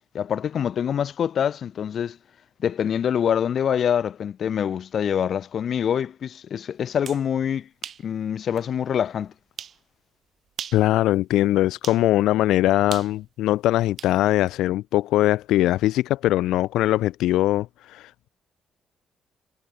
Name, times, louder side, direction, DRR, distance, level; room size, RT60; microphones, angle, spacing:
voice 1, 0.1-2.2 2.6-7.7 8.0-9.3, left 8 dB, 60° left, 1.7 m, -25 dB
sound 1, 6.8-7.3 7.8-8.1 8.6-8.7 9.6-9.8 10.5-10.9 11.8-12.0 12.9-14.2, right 8 dB, 60° right, 3.6 m, -37 dB
voice 2, 10.7-18.3, left 15 dB, 90° left, 0.8 m, -21 dB
cardioid pair, 90°, 0 cm